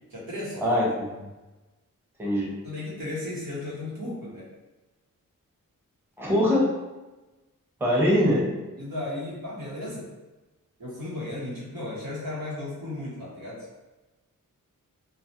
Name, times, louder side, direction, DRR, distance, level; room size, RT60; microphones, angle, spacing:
voice 1, 0.1-0.9 2.6-4.5 7.9-8.0 8.8-10.1 10.8-13.7, left 1 dB, 90° right, -7 dB, 1.0 m, -35 dB
voice 2, 6.2-6.7 7.8-8.5, left 1 dB, 5° right, -5 dB, 0.7 m, -22 dB
2.3 x 2.0 x 2.8 m, 1.1 s
cardioid pair, 65°, 34 cm